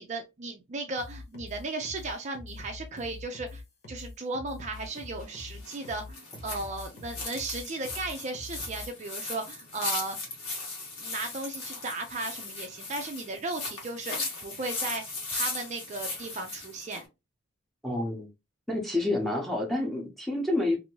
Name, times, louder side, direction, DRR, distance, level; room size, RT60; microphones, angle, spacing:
voice 1, 0.0-3.6 3.9-10.2 11.0-15.0 15.3-17.0, right 2 dB, 35° right, 0.4 m, -36 dB
sound 1, 1.0-8.9, left 2 dB, 50° left, 1.1 m, -44 dB
sound 2, 4.7-17.1, left 3 dB, 90° left, 1.3 m, -37 dB
voice 2, 17.8-18.3 18.7-20.8, left 2 dB, ahead, 0.7 m, -28 dB
2.8 x 2.6 x 2.9 m
head